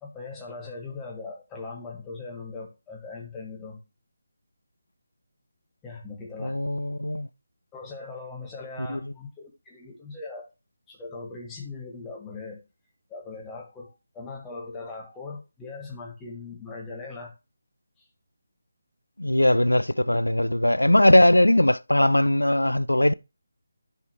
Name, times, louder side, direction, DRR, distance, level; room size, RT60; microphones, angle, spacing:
voice 1, 0.0-3.8 5.8-6.6 7.7-10.5 10.9-12.6 13.1-17.3 18.0-18.1, left 3 dB, 10° left, 1.4 m, -40 dB
voice 2, 6.4-7.3 8.9-9.0 19.2-23.1, left 1 dB, 75° left, 0.3 m, -20 dB
10.5 x 5.0 x 3.0 m
figure-of-eight pair, 155°, 0 cm